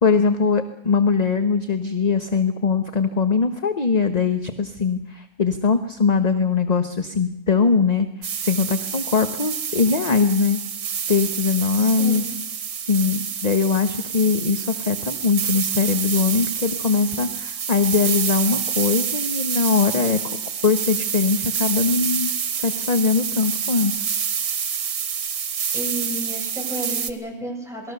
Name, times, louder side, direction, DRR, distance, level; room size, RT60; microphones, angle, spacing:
voice 1, 0.0-8.1 8.4-10.6 11.1-12.3 12.9-23.9, left 5 dB, 30° left, 8 dB, 1.0 m, -21 dB
sound 1, 8.2-27.1, right 7 dB, 80° right, 1.7 m, -27 dB
voice 2, 11.8-12.3 25.7-27.9, right 1 dB, ahead, 0 dB, 7.5 m, -32 dB
27.5 x 20.0 x 6.8 m, 0.82 s
omnidirectional pair, 1.6 m